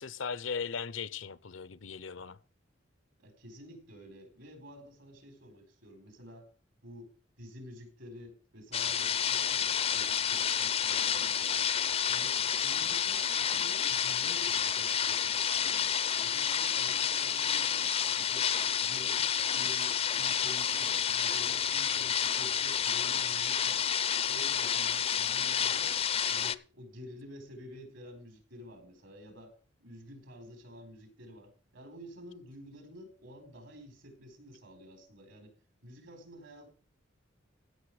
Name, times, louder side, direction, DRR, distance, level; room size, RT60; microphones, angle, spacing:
voice 1, 0.0-2.4, left 6 dB, 70° left, 0.7 m, -38 dB
voice 2, 3.2-6.5 6.8-11.7 12.1-17.9 18.2-18.5 18.8-23.8 24.2-26.0 26.3-29.5 29.8-35.6 35.8-36.7, equal, 70° right, 4.8 m, -50 dB
sound 1, 8.7-26.6, left 8 dB, 30° left, 0.5 m, -30 dB
16.5 x 6.5 x 4.9 m
head